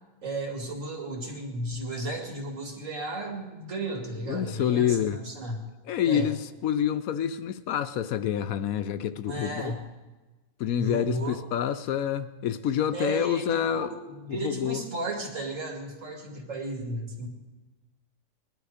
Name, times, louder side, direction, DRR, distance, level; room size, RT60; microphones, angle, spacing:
voice 1, 0.2-5.6 6.0-6.3 9.3-9.8 10.8-11.4 12.9-17.3, right 2 dB, 55° right, 2.5 m, -34 dB
voice 2, 4.3-5.2 5.9-9.7 10.6-13.9 14.4-14.8, left 10 dB, 70° left, 1.0 m, -27 dB
19.5 x 11.0 x 5.0 m
omnidirectional pair, 1.6 m